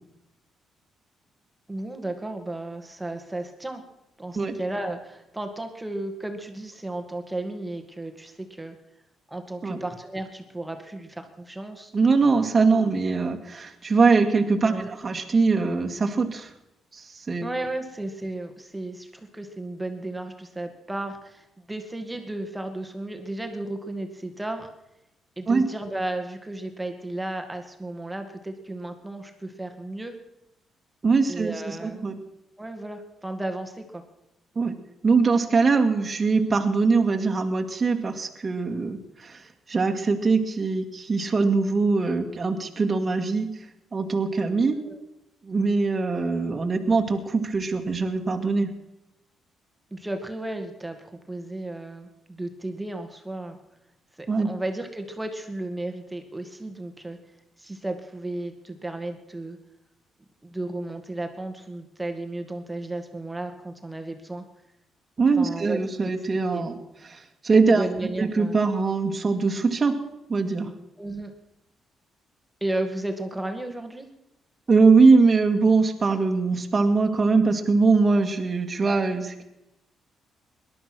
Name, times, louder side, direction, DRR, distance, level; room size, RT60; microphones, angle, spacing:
voice 1, 1.7-3.8 4.2-8.7 9.3-11.9 14.6-14.9 17.4-24.7 25.4-30.1 31.3-32.1 32.6-34.0 44.7-45.0 49.9-53.6 54.2-57.2 57.6-59.6 60.4-64.4 65.4-66.1 66.5-66.7 67.7-68.6 71.0-71.3 72.6-74.1, right 2 dB, 10° right, 5 dB, 2.1 m, -34 dB
voice 2, 11.9-16.5 16.9-17.5 25.5-25.7 31.0-32.2 34.6-34.7 35.0-43.5 43.9-44.8 45.4-48.7 54.3-54.5 65.2-66.8 67.0-67.8 68.2-70.0 70.3-70.7 74.7-79.4, right 4 dB, 35° right, 3 dB, 2.0 m, -22 dB
18.5 x 11.5 x 6.2 m, 0.87 s
cardioid pair, 90°, 0 cm